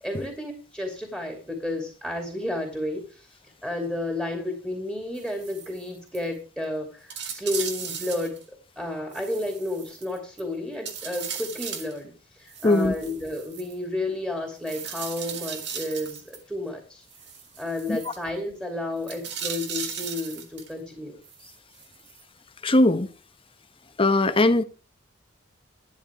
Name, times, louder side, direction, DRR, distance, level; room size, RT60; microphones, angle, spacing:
voice 1, 0.0-3.3 3.6-8.4 8.8-17.0 17.6-21.2, left 1 dB, 5° right, 2.8 m, -32 dB
sound 1, 5.1-5.8 6.1-6.3 6.6-6.7 7.1-8.4 9.1-10.4 10.8-12.0 12.5-13.7 14.7-16.4 17.1-18.2 19.0-20.7 21.2-22.2 22.7-22.8, right 7 dB, 60° right, 2.1 m, -37 dB
voice 2, 12.6-12.9 17.9-18.0 22.6-23.1 24.0-24.6, left 2 dB, 30° left, 1.0 m, -19 dB
12.5 x 10.5 x 3.5 m
head